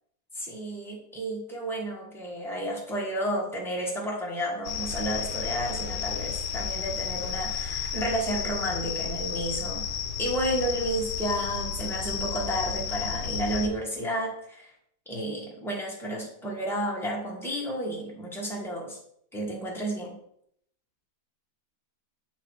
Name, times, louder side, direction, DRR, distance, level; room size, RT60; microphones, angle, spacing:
voice 1, 0.3-9.9 10.2-14.7 15.1-19.0 19.3-20.2, right 1 dB, ahead, -3 dB, 1.2 m, -31 dB
sound 1, 4.6-13.7, left 7 dB, 85° left, 1.2 m, -32 dB
7.9 x 2.9 x 4.7 m, 0.71 s
omnidirectional pair, 1.8 m